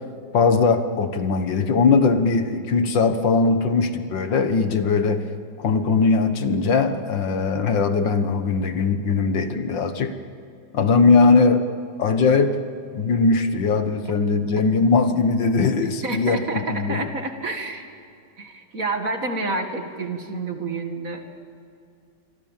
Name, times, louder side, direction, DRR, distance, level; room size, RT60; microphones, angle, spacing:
voice 1, 0.3-5.3 5.6-10.1 10.7-11.7 12.0-12.6 12.9-17.1, left 4 dB, 70° left, 9 dB, 2.0 m, -20 dB
voice 2, 16.0-17.9 18.4-21.3, right 3 dB, 45° right, 5 dB, 2.4 m, -29 dB
27.0 x 24.0 x 7.4 m, 2.4 s
omnidirectional pair, 2.1 m